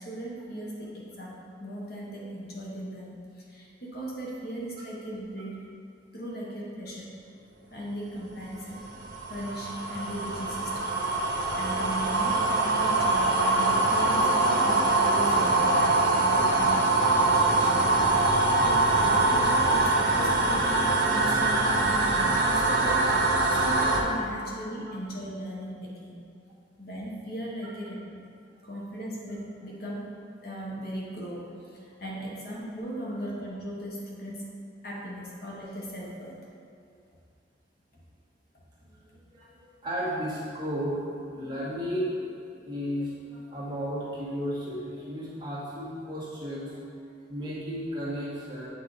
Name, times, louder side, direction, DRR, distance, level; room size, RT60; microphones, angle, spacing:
voice 1, 0.0-5.6 6.1-7.1 7.7-8.8 9.3-10.9 11.2-11.3 11.6-17.8 18.3-26.2 26.8-28.2 28.6-30.1 30.4-34.5 34.8-36.3 37.9-38.0, right 1 dB, 50° left, -4 dB, 1.2 m, -38 dB
sound 1, 8.4-24.0, right 2 dB, 60° right, 0.8 m, -23 dB
voice 2, 39.1-48.7, equal, 25° right, -8 dB, 1.5 m, -34 dB
8.1 x 4.6 x 4.0 m, 2.4 s
head